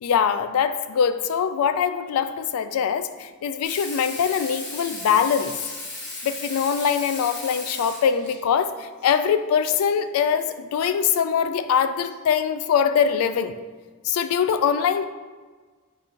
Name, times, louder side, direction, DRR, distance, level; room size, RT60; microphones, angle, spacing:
voice 1, 0.0-5.5 6.2-13.5 14.0-15.0, left 7 dB, 90° left, 12 dB, 0.3 m, -23 dB
Water tap faucet / Sink (filling or washing), 3.6-8.4 9.9-10.0, left 2 dB, 55° left, 1.0 m, -36 dB
4.8 x 2.5 x 4.4 m, 1.4 s
head